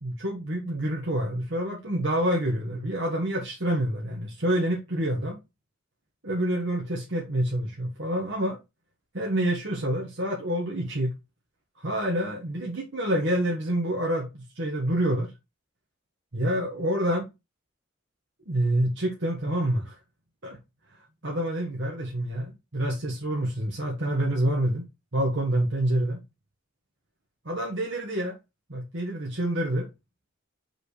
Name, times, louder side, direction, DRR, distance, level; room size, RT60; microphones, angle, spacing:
voice 1, 0.0-5.4 6.2-8.6 9.1-11.1 11.8-15.3 16.3-17.3 18.5-20.0 20.4-20.6 21.2-24.9 25.1-26.2 27.4-28.4 28.7-29.9, right 1 dB, 60° right, 1.6 m, -27 dB
6.1 x 5.3 x 3.3 m
head